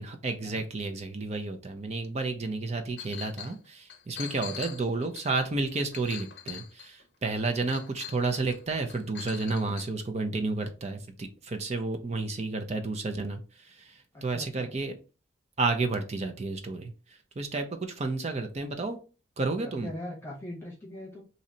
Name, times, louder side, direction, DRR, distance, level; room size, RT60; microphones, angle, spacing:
voice 1, 0.0-13.4 13.7-14.9 15.6-16.9 17.4-19.0 19.4-19.9, right 3 dB, 35° right, 7 dB, 0.5 m, -31 dB
Chink clink, 3.0-3.6 3.9-7.0 7.7-8.6 8.9-9.9, left 9 dB, 70° left, 0.6 m, -43 dB
voice 2, 4.3-4.7 14.1-14.8 19.6-21.2, left 1 dB, 15° left, -1 dB, 1.1 m, -41 dB
3.1 x 2.7 x 3.9 m, 0.33 s
head